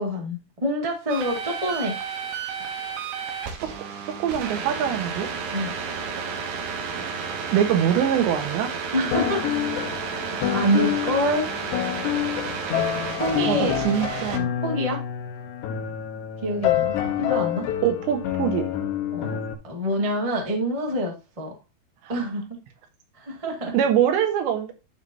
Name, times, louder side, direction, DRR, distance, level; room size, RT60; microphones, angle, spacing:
voice 1, 0.0-2.0 5.5-5.7 8.9-9.6 9.9-11.6 13.2-13.8 14.6-15.0 16.4-17.7 19.1-19.4 19.6-21.5 22.1-22.6 23.1-23.7, equal, 35° right, 1 dB, 0.5 m, -26 dB
sound 1, 1.1-14.4, right 6 dB, 70° right, 2.5 m, -32 dB
voice 2, 4.2-5.3 6.9-7.0 7.5-8.7 13.5-14.5 17.8-18.7 23.7-24.7, right 9 dB, 90° right, 5 dB, 3.6 m, -23 dB
sound 2, 9.1-19.5, left 10 dB, 80° left, 3.3 m, -27 dB
12.5 x 5.0 x 2.8 m, 0.28 s
omnidirectional pair, 5.0 m